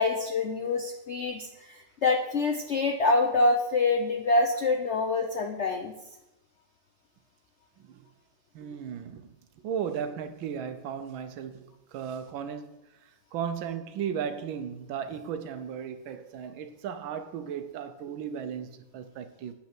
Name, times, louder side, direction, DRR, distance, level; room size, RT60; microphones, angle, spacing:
voice 1, 0.0-5.9, left 3 dB, 90° left, 0.6 m, -26 dB
voice 2, 8.5-9.3 9.6-19.5, right 8 dB, 85° right, 1.5 m, -36 dB
8.5 x 5.8 x 6.0 m
omnidirectional pair, 2.1 m